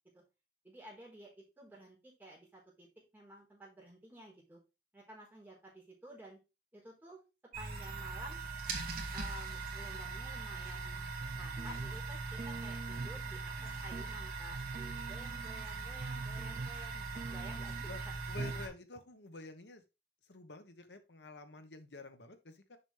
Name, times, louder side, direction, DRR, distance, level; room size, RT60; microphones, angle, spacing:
voice 1, 0.6-2.9 3.1-4.6 4.9-6.4 6.7-7.2 7.6-8.4 9.1-11.0 11.3-18.1, right 1 dB, 10° right, -5 dB, 4.2 m, -53 dB
sound 1, 7.5-18.7, right 4 dB, 55° right, 1.9 m, -41 dB
sound 2, 11.2-12.1 12.4-13.2 13.6-14.1 14.5-15.7 16.0-16.9 17.2-17.9 18.4-18.7 19.0-19.1, right 3 dB, 35° right, 0.3 m, -45 dB
voice 2, 18.3-19.8 20.3-22.8, left 3 dB, 80° left, 7 dB, 1.3 m, -49 dB
7.1 x 5.9 x 3.4 m, 0.27 s
head